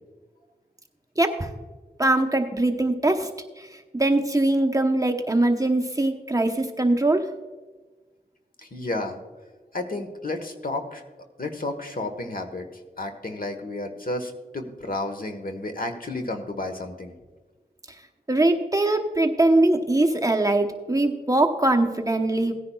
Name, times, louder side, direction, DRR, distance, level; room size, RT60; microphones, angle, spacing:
voice 1, 1.2-1.5 2.0-3.3 3.6-7.3 18.3-22.5, right 2 dB, 20° right, 4 dB, 0.9 m, -22 dB
voice 2, 8.6-9.2 9.7-11.0 11.4-12.7 13.0-17.1, left 2 dB, 60° left, 5 dB, 1.3 m, -31 dB
17.0 x 10.0 x 2.3 m, 1.3 s
wide cardioid pair, 55°, 17 cm